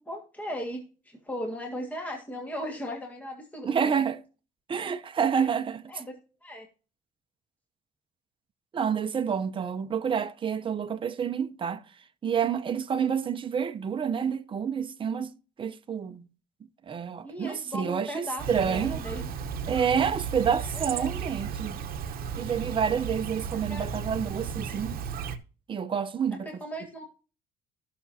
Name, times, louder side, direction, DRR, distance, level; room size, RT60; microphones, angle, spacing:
voice 1, 0.0-3.9 5.3-5.5 5.9-6.1 6.4-6.7 17.2-19.6 20.7-21.1 23.7-23.9 26.4-27.1, equal, 10° left, 1.7 m, -37 dB
voice 2, 3.6-4.2 4.7-5.8 8.7-11.8 12.2-15.3 15.6-16.3 16.9-19.0 19.7-21.8 22.4-24.9 25.7-26.5, right 7 dB, 30° right, 0.7 m, -28 dB
Chirp tweet, 18.4-25.4, right 7 dB, 60° right, 0.9 m, -34 dB
15.0 x 6.0 x 2.7 m
cardioid pair, 110°, 17 cm